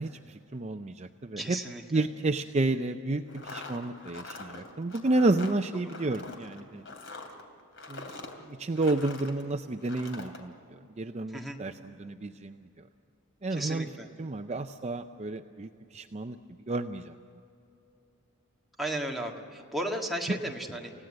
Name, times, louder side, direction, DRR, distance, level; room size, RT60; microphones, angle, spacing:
voice 1, 0.0-1.6 1.9-6.8 7.9-8.1 8.4-12.7 13.4-13.9 14.2-16.4 16.7-17.2, right 2 dB, 30° right, 7 dB, 0.5 m, -31 dB
voice 2, 1.4-2.1 11.3-11.6 13.5-14.1 18.8-20.9, right 1 dB, ahead, -1 dB, 1.9 m, -35 dB
sound 1, 3.3-9.4 9.8-10.4, left 3 dB, 60° left, 2.9 m, -44 dB
29.5 x 16.5 x 7.8 m, 2.8 s
head